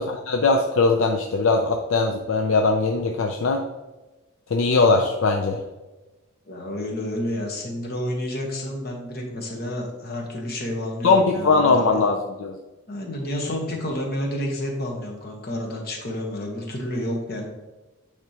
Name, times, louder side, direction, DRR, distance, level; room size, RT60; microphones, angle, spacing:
voice 1, 0.0-3.7 4.5-5.6 11.0-12.6, left 3 dB, 65° left, 3 dB, 0.4 m, -20 dB
voice 2, 6.5-12.0 12.9-17.5, left 1 dB, 45° left, 0 dB, 1.1 m, -30 dB
9.3 x 3.5 x 2.9 m, 1.1 s
head